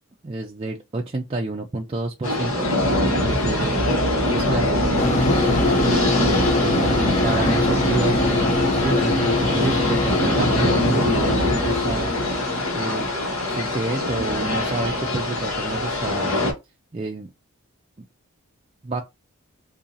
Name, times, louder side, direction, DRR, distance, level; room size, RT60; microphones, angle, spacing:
voice 1, 0.2-3.8 4.3-5.2 5.9-12.1 12.7-13.1 13.5-16.5 16.9-17.3 18.8-19.0, right 2 dB, 25° right, 0.4 m, -29 dB
sound 1, 2.2-16.5, left 1 dB, 80° left, 1.4 m, -23 dB
sound 2, 5.0-13.6, left 2 dB, 35° left, 0.7 m, -24 dB
2.7 x 2.7 x 3.9 m
head